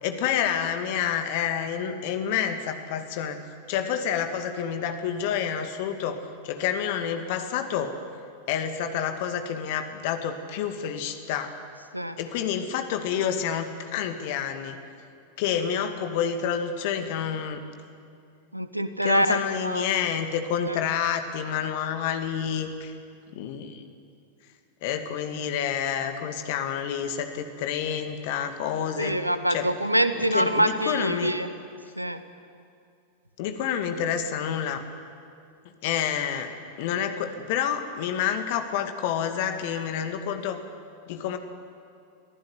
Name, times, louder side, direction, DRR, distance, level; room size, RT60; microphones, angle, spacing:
voice 1, 0.0-3.4 3.7-7.9 8.5-11.5 12.2-14.8 15.4-17.6 19.0-22.9 23.3-23.8 24.8-29.1 29.5-29.7 30.3-31.3 33.4-34.8 35.8-36.5 36.8-40.6 41.1-41.4, left 8 dB, 50° left, 7 dB, 2.1 m, -28 dB
voice 2, 18.5-19.8 20.6-20.8 29.0-31.5 32.0-32.2, right 1 dB, 85° right, 11 dB, 1.2 m, -25 dB
23.5 x 15.5 x 9.9 m, 2.4 s
figure-of-eight pair, 90°, 0 cm